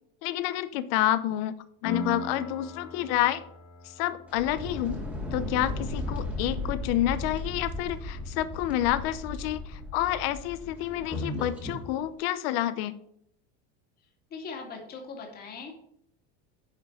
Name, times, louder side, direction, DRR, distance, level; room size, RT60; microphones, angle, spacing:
voice 1, 0.2-1.6 1.8-3.4 4.0-5.0 5.3-12.9, left 13 dB, 65° left, 13 dB, 0.7 m, -29 dB
Piano, 1.8-9.2, left 2 dB, 80° left, 4.8 m, -43 dB
sound 1, 4.3-11.9, left 2 dB, 5° right, 1.9 m, -35 dB
voice 2, 14.3-15.7, left 4 dB, 30° left, 2 dB, 2.3 m, -40 dB
10.0 x 4.9 x 6.6 m, 0.71 s
cardioid pair, 165°, 32 cm